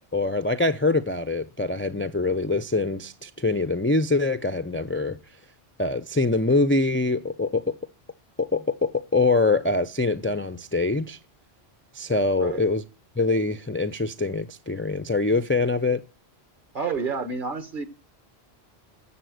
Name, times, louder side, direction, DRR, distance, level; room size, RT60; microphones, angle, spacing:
voice 1, 0.1-5.2 5.8-7.6 8.4-11.2 11.9-12.8 13.2-16.0, left 3 dB, 20° left, 0.3 m, -24 dB
voice 2, 12.4-12.7 16.7-17.8, right 5 dB, 55° right, 1.6 m, -29 dB
11.0 x 7.4 x 7.9 m
omnidirectional pair, 1.1 m